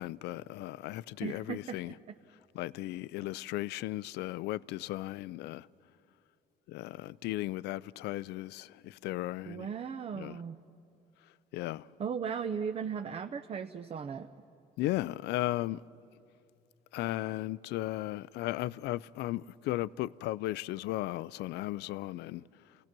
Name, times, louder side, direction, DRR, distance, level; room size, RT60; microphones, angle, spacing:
voice 1, 0.0-1.9 2.5-5.7 6.7-9.7 10.2-10.4 11.5-11.9 14.8-15.8 16.9-22.4, left 16 dB, 80° left, 0.4 m, -36 dB
voice 2, 1.2-1.8 2.1-2.2 9.5-10.6 12.0-14.3, right 7 dB, 35° right, 0.6 m, -37 dB
28.0 x 17.5 x 6.0 m
cardioid pair, 110°, 17 cm